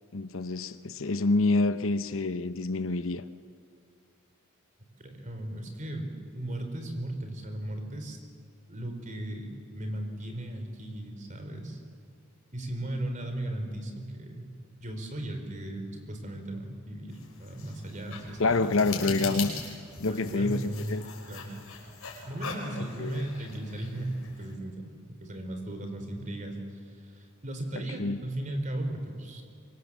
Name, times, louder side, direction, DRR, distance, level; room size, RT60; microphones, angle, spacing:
voice 1, 0.1-3.3 18.4-19.6 20.0-21.0 23.0-23.3 28.0-28.2, left 3 dB, 65° left, 0.9 m, -27 dB
voice 2, 5.0-8.2 8.7-11.8 12.5-14.5 14.8-18.7 19.0-19.2 20.1-21.0 21.3-21.5 22.3-24.9 25.2-29.4, right 1 dB, 35° right, 3.9 m, -36 dB
sound 1, 17.1-24.5, left 4 dB, 90° left, 5.5 m, -40 dB
24.5 x 24.0 x 7.4 m
head